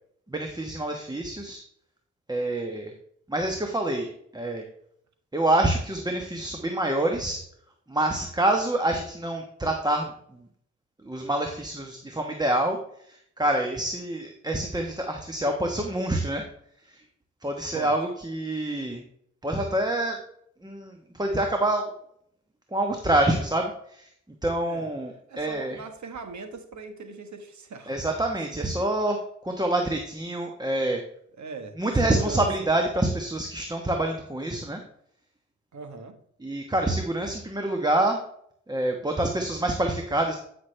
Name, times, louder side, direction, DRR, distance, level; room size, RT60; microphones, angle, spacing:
voice 1, 0.3-1.6 2.3-2.9 3.3-4.1 4.3-4.6 5.3-7.4 7.9-10.1 11.0-12.8 13.1-16.4 16.9-17.0 17.4-19.0 19.4-20.2 20.6-21.9 22.7-24.1 24.4-25.8 27.9-29.2 29.4-31.0 31.8-34.8 36.4-38.2 38.7-40.4, right 1 dB, 15° right, 3 dB, 1.2 m, -26 dB
voice 2, 25.3-28.1 28.5-28.8 31.4-32.5 35.7-36.1, right 4 dB, 70° right, 6 dB, 1.4 m, -40 dB
9.5 x 6.0 x 3.3 m, 0.67 s
cardioid pair, 55°, 30 cm